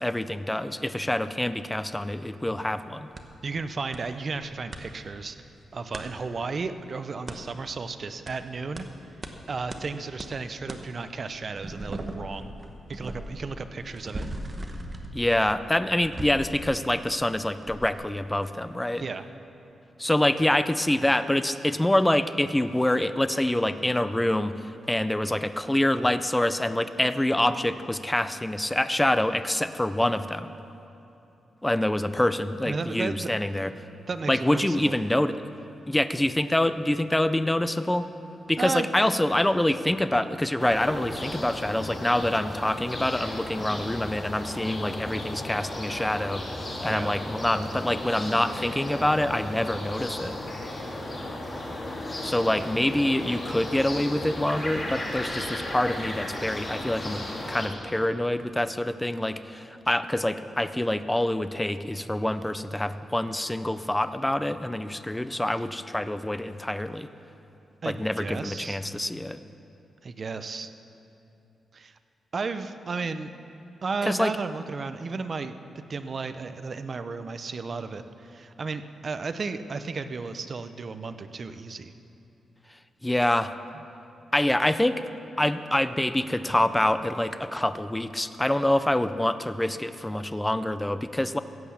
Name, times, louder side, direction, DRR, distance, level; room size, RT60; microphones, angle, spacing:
voice 1, 0.0-3.1 15.1-19.0 20.0-24.5 24.9-30.5 31.6-33.7 34.3-35.4 35.9-38.1 38.5-46.4 46.8-50.4 52.2-67.1 67.9-69.4 74.0-74.3 83.0-83.5 84.3-85.0 85.4-91.4, left 1 dB, 10° left, 11 dB, 0.4 m, -26 dB
sound 1, 3.2-3.3 3.9-4.0 4.3-4.8 5.9-6.1 7.3-7.4 8.3-8.4 8.8-8.9 9.2-9.3 9.7-9.8 10.2-10.3 10.7-10.8 11.3-17.3 17.7-17.9, right 1 dB, 25° right, 1.0 m, -38 dB
voice 2, 3.4-5.4 5.7-8.9 9.5-12.5 12.9-14.3 19.0-19.3 32.6-33.3 34.1-35.0 38.6-38.9 46.9-47.1 67.8-68.8 70.0-70.7 71.7-72.0 72.3-73.3 73.8-81.9 83.7-83.8, right 4 dB, 40° right, 10 dB, 0.6 m, -34 dB
sound 2, 40.6-57.7, left 1 dB, 25° left, 2.2 m, -35 dB
15.5 x 8.5 x 7.1 m, 2.9 s
wide cardioid pair, 145°, 0 cm